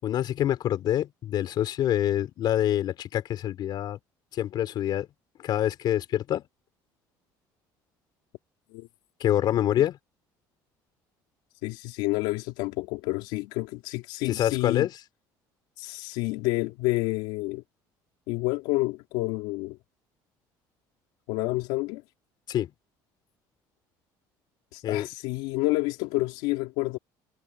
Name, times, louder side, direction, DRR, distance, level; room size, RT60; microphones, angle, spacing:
voice 1, 0.0-4.0 4.3-5.1 5.4-6.4 9.2-10.0 14.3-14.9 22.5-22.7 24.8-25.1, left 11 dB, 55° left, 4.2 m, -26 dB
voice 2, 11.6-14.9 15.8-17.6 18.3-19.8 21.3-22.0 24.7-27.0, left 21 dB, 85° left, 3.4 m, -29 dB
cardioid pair, 105°, 9 cm